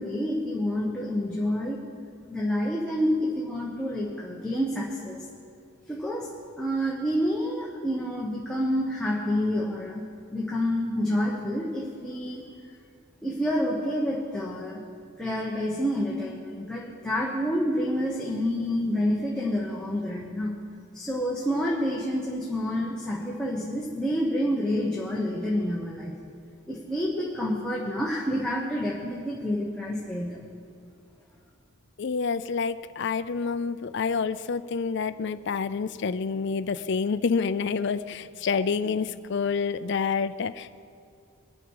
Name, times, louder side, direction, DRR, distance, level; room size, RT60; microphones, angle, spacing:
voice 1, 0.0-1.8 2.3-5.3 5.9-6.3 6.6-10.0 10.3-12.4 13.2-14.8 15.2-20.6 20.9-26.1 26.7-30.4, equal, 5° left, -5 dB, 1.2 m, -28 dB
voice 2, 32.0-40.8, left 5 dB, 55° left, 14 dB, 0.4 m, -28 dB
22.5 x 8.8 x 4.8 m, 2.3 s
head